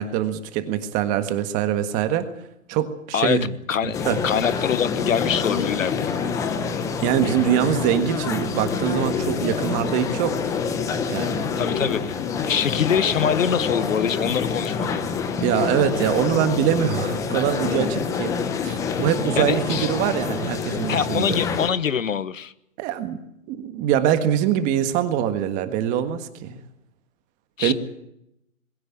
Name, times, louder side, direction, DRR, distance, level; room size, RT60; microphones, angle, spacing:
voice 1, 0.0-2.3 2.7-3.5 4.0-4.2 7.0-10.4 11.1-11.5 15.4-18.3 18.6-21.4 22.8-23.2 23.5-26.6 27.6-27.7, right 10 dB, 20° right, 1.5 m, -23 dB
voice 2, 3.7-6.3 11.5-12.2 12.4-14.9 19.4-20.0 20.9-22.5 27.6-27.7, left 8 dB, 70° left, 1.4 m, -24 dB
sound 1, 3.9-21.7, left 6 dB, 10° left, 0.9 m, -26 dB
21.5 x 16.5 x 8.8 m
hypercardioid pair, 150°, 41 cm